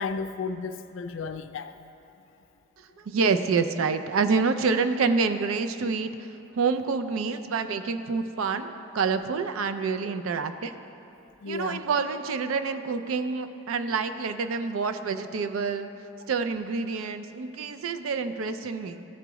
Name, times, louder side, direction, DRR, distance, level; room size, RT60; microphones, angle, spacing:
voice 1, 0.0-1.7 11.4-11.8, left 4 dB, 65° left, 0.4 m, -33 dB
voice 2, 3.0-6.1 6.5-10.7 11.5-15.9 16.3-19.1, right 5 dB, 85° right, 0.4 m, -27 dB
13.0 x 4.6 x 3.0 m
head